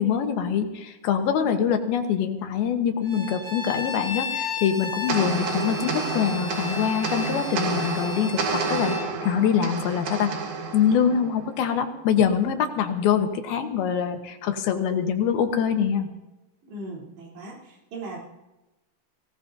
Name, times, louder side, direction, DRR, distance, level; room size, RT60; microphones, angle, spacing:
voice 1, 0.0-10.3 10.7-16.1, left 8 dB, 75° left, 6 dB, 2.8 m, -24 dB
Bowed string instrument, 3.0-9.1, left 6 dB, 35° left, 2.3 m, -34 dB
sound 1, 5.1-11.7, right 4 dB, 60° right, 2.1 m, -30 dB
voice 2, 16.6-18.2, right 2 dB, 85° right, -4 dB, 5.7 m, -38 dB
23.5 x 17.0 x 2.7 m, 1.0 s
omnidirectional pair, 4.7 m